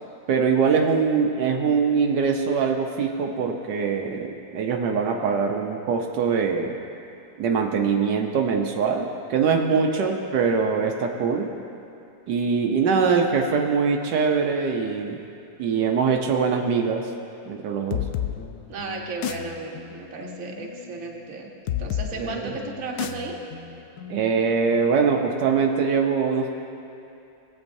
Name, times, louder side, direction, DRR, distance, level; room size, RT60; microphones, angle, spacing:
voice 1, 0.3-6.7 7.4-11.5 12.3-15.2 15.6-17.1 17.5-18.0 22.2-22.5 24.1-26.6, right 5 dB, 85° right, 2 dB, 1.4 m, -23 dB
voice 2, 9.7-10.2 18.7-21.5 21.8-23.4, right 3 dB, 55° right, 0 dB, 1.4 m, -34 dB
sound 1, 17.9-25.3, left 11 dB, 70° left, 0.8 m, -33 dB
19.0 x 8.1 x 2.6 m, 2.9 s
omnidirectional pair, 1.8 m